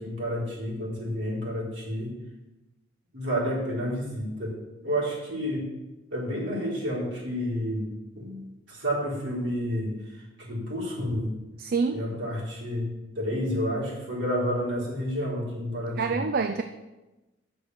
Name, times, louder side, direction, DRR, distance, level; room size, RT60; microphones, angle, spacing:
voice 1, 0.0-2.1 3.1-4.6 4.8-5.6 6.1-7.8 8.2-11.3 11.9-12.9 13.1-16.2, equal, 70° right, -5 dB, 4.1 m, -30 dB
voice 2, 11.6-12.0 16.0-16.6, right 4 dB, 50° right, 7 dB, 0.5 m, -26 dB
9.4 x 6.6 x 6.3 m, 1.1 s
head